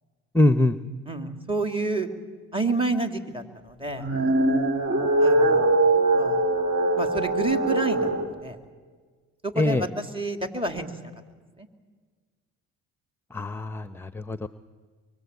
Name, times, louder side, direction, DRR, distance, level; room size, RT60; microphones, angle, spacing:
voice 1, 0.3-0.8 9.6-9.9 13.3-14.5, left 1 dB, 5° left, 12 dB, 0.8 m, -23 dB
voice 2, 1.1-2.1 2.5-4.1 5.2-5.8 6.1-6.4 7.0-8.6 9.4-11.0 11.6-11.7, right 3 dB, 15° right, 6 dB, 3.0 m, -29 dB
sound 1, 3.9-8.3, right 2 dB, 50° right, 4.3 m, -22 dB
24.5 x 23.5 x 8.3 m, 1.5 s
supercardioid pair, 80°, 30 cm